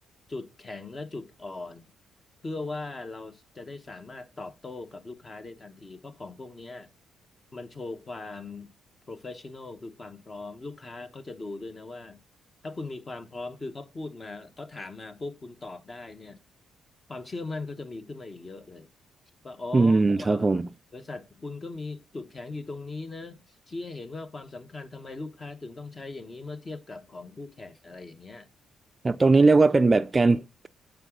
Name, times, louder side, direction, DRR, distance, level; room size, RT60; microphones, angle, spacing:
voice 1, 0.3-1.9 2.4-6.9 7.5-8.7 9.1-12.2 12.6-16.4 17.1-18.9 19.4-20.5 20.9-28.5, left 3 dB, 30° left, 1.1 m, -39 dB
voice 2, 19.7-20.6 29.0-30.7, right 3 dB, 25° right, 0.5 m, -20 dB
9.3 x 4.9 x 3.8 m
cardioid pair, 90°, 0 cm